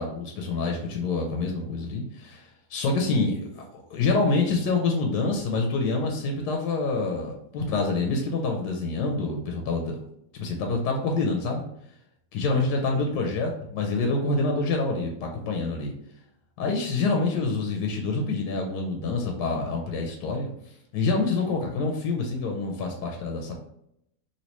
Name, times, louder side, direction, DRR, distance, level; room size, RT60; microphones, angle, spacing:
voice 1, 0.0-10.0 10.3-11.6 12.3-15.9 16.6-20.5 20.9-23.5, left 3 dB, 90° left, 1 dB, 1.2 m, -27 dB
3.1 x 2.7 x 2.9 m, 0.76 s
omnidirectional pair, 1.7 m